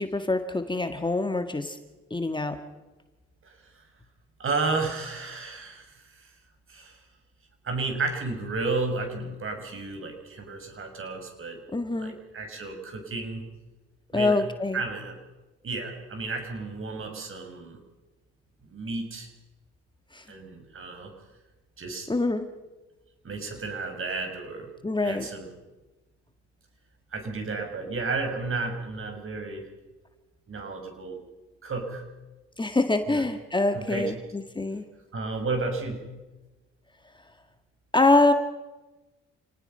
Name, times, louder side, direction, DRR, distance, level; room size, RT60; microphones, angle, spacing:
voice 1, 0.0-1.8 2.1-2.6 11.7-12.1 14.1-14.8 20.1-20.2 22.1-22.5 24.8-25.3 32.6-34.8 37.9-38.3, left 2 dB, 15° left, 7 dB, 1.8 m, -25 dB
voice 2, 3.4-3.8 4.4-6.3 6.7-7.0 7.6-11.6 12.0-13.4 14.1-14.4 14.7-15.2 15.6-17.8 18.7-19.3 20.3-21.1 21.8-22.1 23.2-24.7 25.0-25.5 27.1-29.6 30.5-31.2 31.6-32.0 33.1-33.2 33.7-34.0 35.1-36.0, right 3 dB, 45° right, 5 dB, 6.3 m, -32 dB
28.5 x 19.0 x 5.7 m, 1.1 s
supercardioid pair, 60°, 29 cm